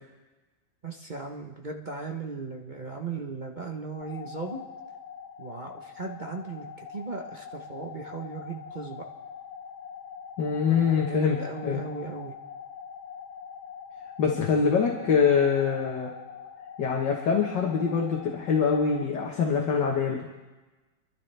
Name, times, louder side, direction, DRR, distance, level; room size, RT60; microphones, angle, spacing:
voice 1, 0.8-4.6 5.4-9.1 10.7-12.3, right 4 dB, 35° right, 1 dB, 0.8 m, -37 dB
sound 1, 4.0-19.0, left 7 dB, 80° left, 1.7 m, -43 dB
voice 2, 10.4-11.4 11.6-11.8 14.2-16.1 16.8-20.2, left 6 dB, 65° left, 0 dB, 2.0 m, -24 dB
27.5 x 12.0 x 3.4 m, 1.2 s
omnidirectional pair, 2.1 m